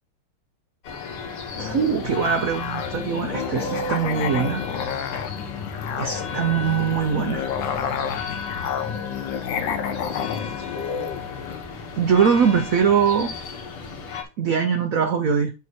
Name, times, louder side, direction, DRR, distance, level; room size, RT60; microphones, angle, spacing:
sound 1, 0.8-14.2, left 4 dB, 85° left, 2.4 m, -34 dB
Musical instrument, 1.5-11.7, left 8 dB, 65° left, 1.4 m, -30 dB
voice 1, 1.6-4.6 6.0-7.5 12.0-13.3 14.4-15.5, right 7 dB, 80° right, 0.7 m, -22 dB
8.2 x 2.9 x 6.1 m
omnidirectional pair, 2.4 m